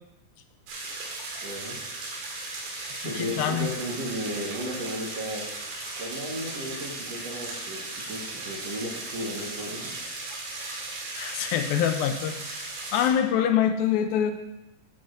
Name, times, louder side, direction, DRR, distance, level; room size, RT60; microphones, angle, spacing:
sound 1, 0.7-13.1, right 2 dB, 75° right, 3.6 m, -36 dB
voice 1, 1.4-1.7 3.0-5.5 6.0-7.8 8.1-9.9, equal, 55° right, -3 dB, 2.0 m, -34 dB
voice 2, 3.0-3.7 11.2-12.7 12.9-14.3, left 9 dB, 85° left, 7 dB, 2.4 m, -25 dB
13.0 x 9.7 x 2.6 m, 0.96 s
omnidirectional pair, 4.3 m